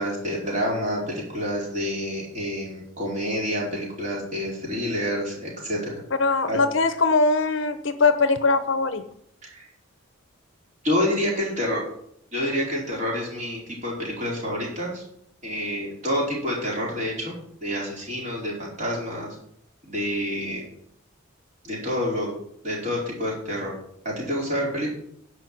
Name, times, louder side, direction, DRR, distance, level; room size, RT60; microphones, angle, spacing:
voice 1, 0.0-5.9 6.5-6.6 9.4-9.7 10.8-11.8 12.3-15.0 15.4-19.3 19.9-20.6 21.6-22.3 22.6-23.7 24.0-25.0, equal, 35° right, -4 dB, 4.6 m, -28 dB
voice 2, 6.2-9.0, left 3 dB, 60° left, 10 dB, 0.8 m, -21 dB
10.5 x 5.8 x 7.5 m, 0.70 s
head